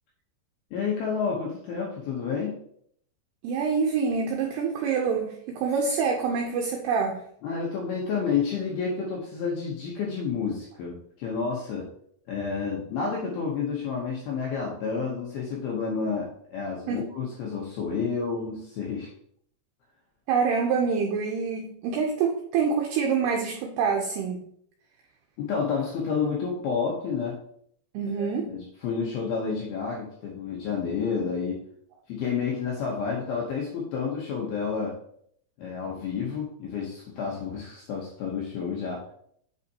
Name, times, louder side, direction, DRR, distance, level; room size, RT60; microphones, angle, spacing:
voice 1, 0.7-2.5 7.4-11.9 12.3-19.1 25.4-27.4 28.2-31.6 32.1-35.0 35.6-39.0, left 5 dB, 75° left, -2 dB, 2.3 m, -30 dB
voice 2, 3.4-7.2 16.9-17.1 20.3-24.4 27.9-28.5, right 5 dB, 85° right, 1 dB, 2.3 m, -26 dB
8.0 x 5.5 x 2.8 m, 0.67 s
omnidirectional pair, 5.5 m